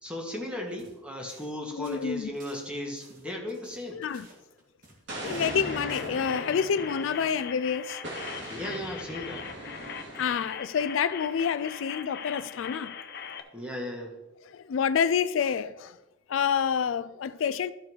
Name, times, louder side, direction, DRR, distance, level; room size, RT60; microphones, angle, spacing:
voice 1, 0.0-4.0 8.5-9.5 13.5-14.2, left 1 dB, 5° right, 1.6 m, -36 dB
sound 1, 0.7-1.0 1.3-1.5 1.8-5.0 5.3-5.6 5.9-6.1, right 2 dB, 45° right, 1.9 m, -55 dB
voice 2, 1.8-2.3 3.9-4.3 5.2-8.0 10.2-12.9 14.5-16.0 16.3-17.7, left 7 dB, 75° left, 0.3 m, -28 dB
Explosion, 5.1-7.5 8.0-10.6, right 1 dB, 60° right, 2.8 m, -39 dB
sound 2, 5.4-13.4, left 7 dB, 55° left, 0.7 m, -41 dB
13.0 x 4.7 x 4.7 m
head